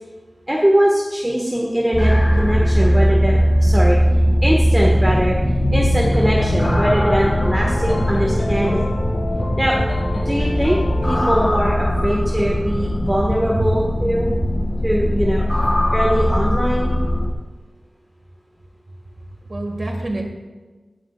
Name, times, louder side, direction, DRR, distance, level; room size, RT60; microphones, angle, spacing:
voice 1, 0.5-4.0 4.4-5.4 5.7-8.9 9.6-9.8 10.2-10.8 11.0-14.3 14.8-15.4 15.9-16.9, equal, 20° right, -2 dB, 1.7 m, -21 dB
sound 1, 1.9-17.3, equal, 30° left, 1.2 m, -19 dB
sound 2, 6.0-11.3, left 1 dB, 85° left, 3.8 m, -29 dB
voice 2, 13.5-14.1 19.5-20.2, right 1 dB, 55° right, 2 dB, 2.0 m, -25 dB
17.0 x 9.0 x 2.5 m, 1.3 s
cardioid pair, 45°, 0 cm